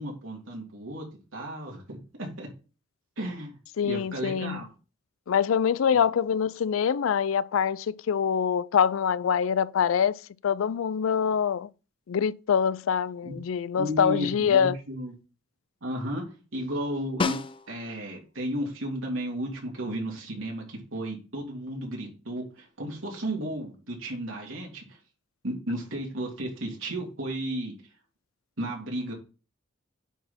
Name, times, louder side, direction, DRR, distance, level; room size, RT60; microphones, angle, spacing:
voice 1, 0.0-2.5 3.2-3.5 3.8-4.7 13.2-13.3 13.8-15.1 15.8-16.3 16.5-17.4 17.7-25.0 25.4-27.7 28.6-29.1, right 1 dB, 90° right, 3.0 m, -34 dB
voice 2, 3.8-4.6 5.3-11.7 12.1-14.8, left 7 dB, 90° left, 0.4 m, -25 dB
Snare drum, 17.2-18.1 22.6-22.7, left 4 dB, 25° left, 0.4 m, -30 dB
9.2 x 4.2 x 4.3 m
head